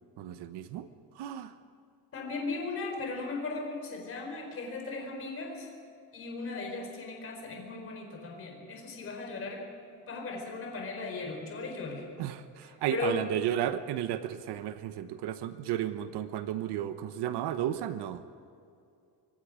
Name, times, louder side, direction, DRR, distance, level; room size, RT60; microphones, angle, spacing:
voice 1, 0.2-0.9 1.2-1.5 12.2-18.2, right 11 dB, 65° right, 11 dB, 1.1 m, -33 dB
voice 2, 2.1-5.7 6.1-9.6 10.1-12.1 12.6-13.2, left 3 dB, 30° left, 1 dB, 4.6 m, -37 dB
25.5 x 24.0 x 5.1 m, 2.4 s
cardioid pair, 175°, 43 cm